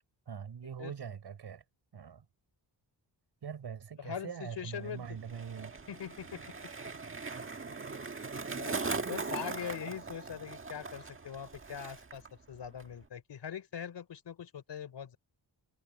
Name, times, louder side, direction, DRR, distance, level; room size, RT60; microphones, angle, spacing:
voice 1, 0.3-1.6 1.9-2.3 3.4-5.8, right 7 dB, 70° right, 5.3 m, -43 dB
voice 2, 4.0-5.1 5.9-6.7 8.5-8.8 9.1-12.2 12.5-15.2, left 8 dB, 80° left, 3.7 m, -42 dB
Skateboard, 4.7-12.3 12.5-13.1, right 4 dB, 30° right, 1.7 m, -40 dB
wide cardioid pair, 125°, 41 cm